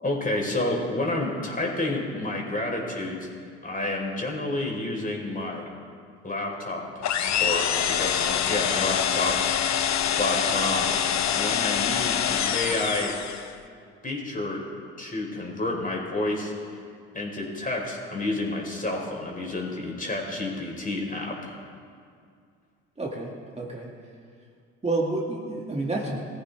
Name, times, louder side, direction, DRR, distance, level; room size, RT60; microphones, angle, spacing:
voice 1, 0.0-3.3 3.6-5.7 6.2-7.1 7.4-9.4 10.2-11.0 11.3-13.2 14.0-14.6 15.0-16.5 17.1-21.6, left 2 dB, 25° left, -1 dB, 4.3 m, -29 dB
sound 1, 7.0-13.5, left 9 dB, 50° left, 1.0 m, -25 dB
voice 2, 23.0-23.9 24.8-26.2, right 2 dB, 20° right, -2 dB, 2.3 m, -29 dB
20.0 x 14.5 x 3.5 m, 2.2 s
hypercardioid pair, 55°, 35 cm